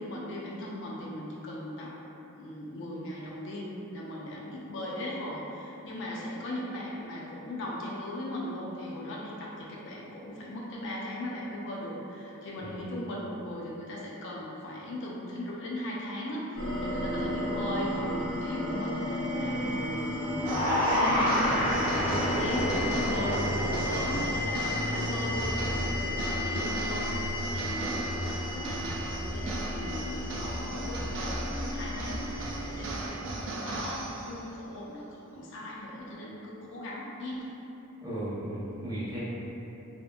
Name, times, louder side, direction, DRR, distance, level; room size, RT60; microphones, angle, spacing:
voice 1, 0.0-2.0 2.4-34.0 34.3-37.5, left 1 dB, 55° left, -4 dB, 0.4 m, -38 dB
sound 1, 16.6-33.1, left 1 dB, 85° left, 0.9 m, -33 dB
sound 2, 20.4-26.6, equal, 45° right, 0.9 m, -30 dB
sound 3, 20.5-34.5, right 2 dB, 60° right, 0.3 m, -38 dB
voice 2, 38.0-39.2, right 1 dB, 15° right, -11 dB, 0.7 m, -35 dB
2.8 x 2.5 x 2.2 m, 3.0 s
head